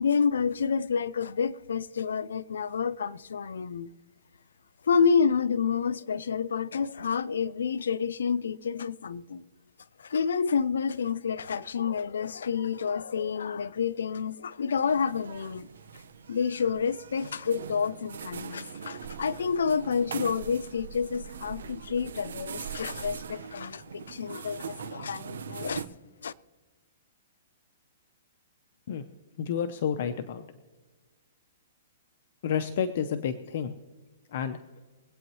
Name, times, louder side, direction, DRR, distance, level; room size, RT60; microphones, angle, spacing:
voice 1, 0.0-3.9 4.8-9.4 10.0-15.7 16.3-25.8 26.2-26.3, left 6 dB, 90° left, 0.5 m, -29 dB
sound 1, 14.9-25.9, right 7 dB, 90° right, 1.1 m, -41 dB
voice 2, 29.4-30.4 32.4-33.7 34.3-34.6, left 8 dB, 55° left, 0.8 m, -30 dB
23.5 x 9.0 x 3.1 m
hypercardioid pair, 155°, 0 cm